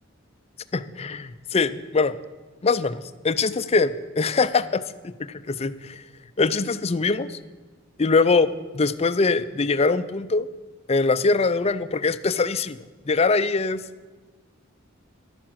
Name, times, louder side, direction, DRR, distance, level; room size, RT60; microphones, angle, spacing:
voice 1, 0.7-2.2 2.6-6.0 6.4-7.4 8.0-10.5 10.9-12.8 13.1-13.8, left 4 dB, 30° left, 13 dB, 0.5 m, -23 dB
11.5 x 9.6 x 7.5 m, 1.3 s
head